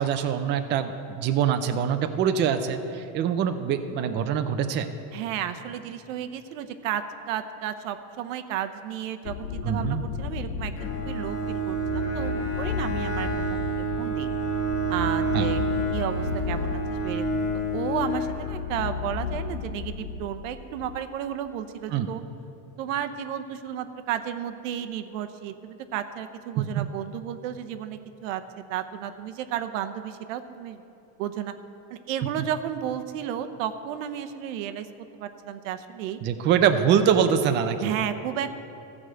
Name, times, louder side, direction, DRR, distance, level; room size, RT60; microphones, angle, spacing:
voice 1, 0.0-4.9 9.6-10.0 15.3-15.5 21.9-22.1 26.7-26.8 36.2-38.0, right 8 dB, 30° right, 8 dB, 0.5 m, -24 dB
voice 2, 5.1-14.3 14.9-15.6 15.9-17.5 17.7-22.2 22.8-28.4 28.7-30.8 31.2-31.5 31.9-34.9 35.1-36.2 37.8-38.5, right 10 dB, 90° right, 9 dB, 0.8 m, -33 dB
sound 1, 9.2-21.0, left 6 dB, 65° left, 0.6 m, -34 dB
Bowed string instrument, 10.8-19.0, right 2 dB, 40° left, 1.6 m, -29 dB
14.5 x 4.9 x 7.6 m, 2.8 s
cardioid pair, 150°, 38 cm